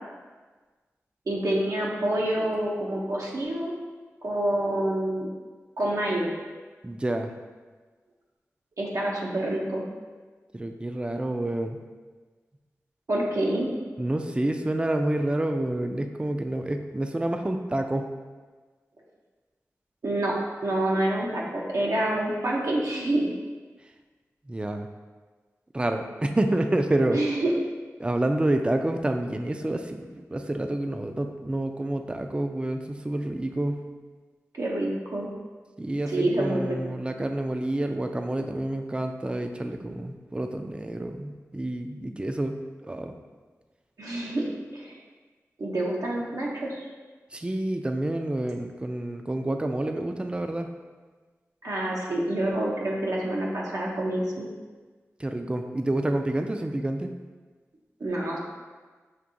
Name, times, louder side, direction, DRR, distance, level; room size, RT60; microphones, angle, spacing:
voice 1, 1.3-3.7 4.2-5.3 5.8-6.3 8.8-9.8 13.1-13.8 20.0-20.3 20.6-23.3 27.1-27.5 34.5-35.3 36.1-36.8 44.0-44.4 44.7-45.0 45.6-46.8 51.6-54.5 58.0-58.4, right 1 dB, 75° right, -4 dB, 0.6 m, -27 dB
voice 2, 6.8-7.3 10.5-11.8 14.0-18.1 24.5-24.9 25.7-27.2 28.0-33.8 35.8-42.6 42.8-43.2 47.3-50.7 55.2-57.1, right 1 dB, 20° right, 5 dB, 0.3 m, -28 dB
5.8 x 2.6 x 2.6 m, 1.4 s
cardioid pair, 45°, 6 cm